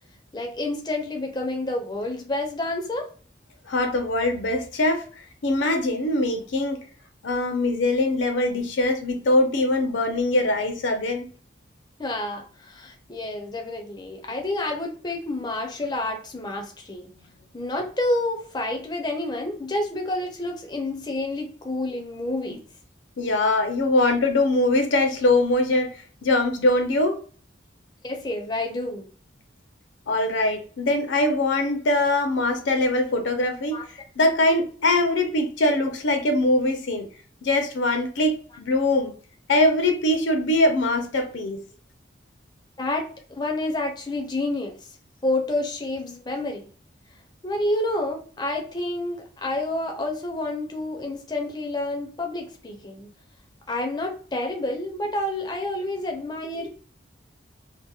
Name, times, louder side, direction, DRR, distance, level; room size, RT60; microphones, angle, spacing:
voice 1, 0.3-3.1 12.0-17.1 17.5-22.6 28.0-29.1 33.7-33.9 42.8-44.7 45.2-46.6 47.4-53.1 53.7-56.8, left 2 dB, 20° left, 0.4 m, -29 dB
voice 2, 3.7-5.0 5.4-6.8 7.2-11.3 23.2-26.0 26.2-27.2 30.1-33.8 34.2-37.1 37.4-39.1 39.5-41.6, left 2 dB, 75° left, 0.5 m, -22 dB
2.7 x 2.0 x 2.3 m
head